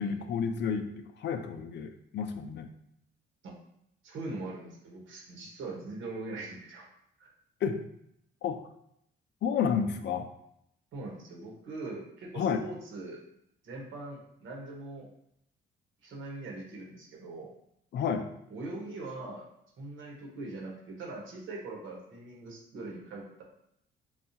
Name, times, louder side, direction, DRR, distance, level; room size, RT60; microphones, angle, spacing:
voice 1, 0.0-2.7 7.6-7.8 8.4-8.6 9.4-10.3 12.4-12.6 17.9-18.3, left 6 dB, 60° left, 7 dB, 0.5 m, -31 dB
voice 2, 4.0-6.9 7.2-7.3 10.9-13.2 13.6-15.1 16.0-17.5 18.5-19.5 19.8-23.4, right 2 dB, 80° right, -1 dB, 1.2 m, -41 dB
5.3 x 2.4 x 2.8 m, 0.75 s
cardioid pair, 90°, 20 cm